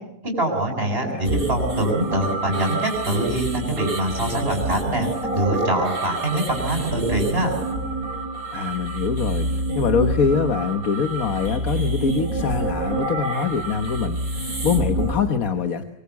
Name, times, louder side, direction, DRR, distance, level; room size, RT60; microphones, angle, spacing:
voice 1, 0.2-5.1 5.3-7.6, right 1 dB, 35° right, 2 dB, 7.3 m, -23 dB
sound 1, 1.2-15.2, right 2 dB, 60° right, 4.9 m, -27 dB
voice 2, 8.5-9.5 9.7-15.8, left 6 dB, 65° left, 7 dB, 1.6 m, -24 dB
24.0 x 24.0 x 8.4 m, 0.80 s
omnidirectional pair, 1.7 m